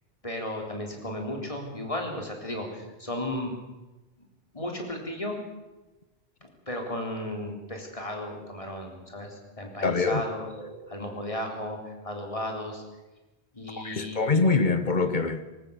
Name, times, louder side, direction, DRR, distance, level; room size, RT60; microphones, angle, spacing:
voice 1, 0.2-3.5 4.5-5.3 6.4-12.8 13.5-14.2, left 1 dB, 30° left, 4.0 m, -34 dB
voice 2, 9.8-10.2 13.8-15.4, left 4 dB, 45° left, 1.4 m, -24 dB
21.0 x 18.0 x 8.3 m
omnidirectional pair, 1.1 m